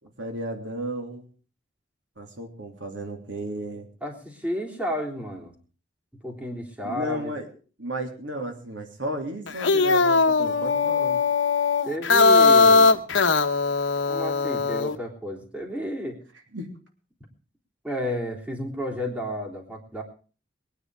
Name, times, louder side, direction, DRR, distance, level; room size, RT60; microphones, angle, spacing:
voice 1, 0.0-1.3 2.2-3.9 6.8-7.5 7.8-11.2 16.5-16.7, right 1 dB, 80° right, 4 dB, 3.3 m, -34 dB
voice 2, 4.0-5.5 6.2-7.3 11.8-13.0 14.1-16.2 17.8-20.0, equal, 5° right, 0 dB, 3.5 m, -31 dB
sound 1, 9.5-15.0, left 4 dB, 85° left, 1.1 m, -20 dB
22.5 x 10.0 x 4.9 m, 0.39 s
head